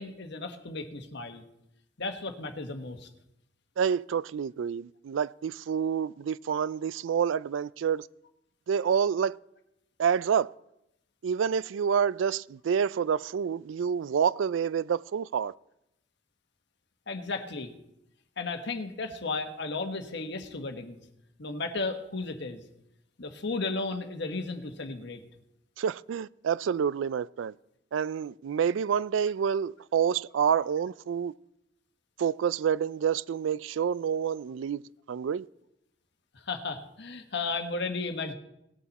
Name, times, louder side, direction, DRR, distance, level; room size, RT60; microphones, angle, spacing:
voice 1, 0.0-1.4 2.0-3.1 17.1-17.7 18.4-21.0 21.4-22.6 23.2-25.2 36.3-38.3, left 3 dB, 65° left, 1.3 m, -34 dB
voice 2, 3.8-8.1 8.7-9.4 10.0-10.5 11.2-15.5 25.8-27.5 27.9-31.3 32.2-34.8 35.1-35.5, right 7 dB, 75° right, 0.3 m, -28 dB
19.0 x 7.1 x 4.1 m
head